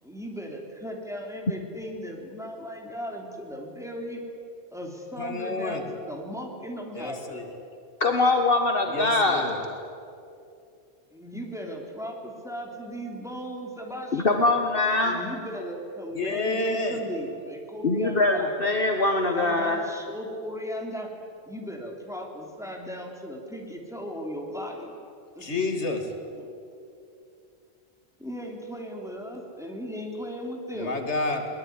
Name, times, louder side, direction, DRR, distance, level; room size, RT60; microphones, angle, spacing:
voice 1, 0.0-4.2 4.7-7.4 11.1-14.5 15.0-18.5 19.2-21.1 21.5-24.9 25.3-25.5 28.2-30.9, equal, 5° right, 1 dB, 3.5 m, -37 dB
voice 2, 5.2-5.9 6.9-7.5 8.9-9.6 16.1-17.0 25.4-26.1 30.7-31.5, left 2 dB, 85° left, 5 dB, 2.7 m, -29 dB
voice 3, 8.0-9.4 14.1-15.2 17.8-19.8, left 2 dB, 55° left, 4 dB, 1.6 m, -23 dB
22.5 x 20.0 x 9.7 m, 2.5 s
omnidirectional pair, 1.1 m